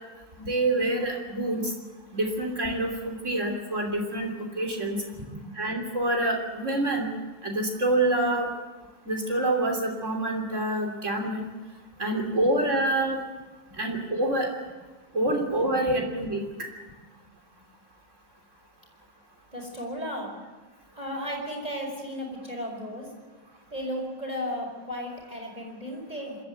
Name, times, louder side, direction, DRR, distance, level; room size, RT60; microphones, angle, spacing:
voice 1, 0.4-1.7 2.1-5.0 5.5-7.1 7.4-8.5 9.1-11.5 12.0-13.2 13.8-14.5 15.1-16.4, right 1 dB, 40° right, 1 dB, 3.6 m, -26 dB
voice 2, 19.5-20.3 21.0-23.1 23.7-26.4, equal, 25° right, -1 dB, 5.2 m, -34 dB
26.5 x 13.5 x 8.1 m, 1.2 s
omnidirectional pair, 1.9 m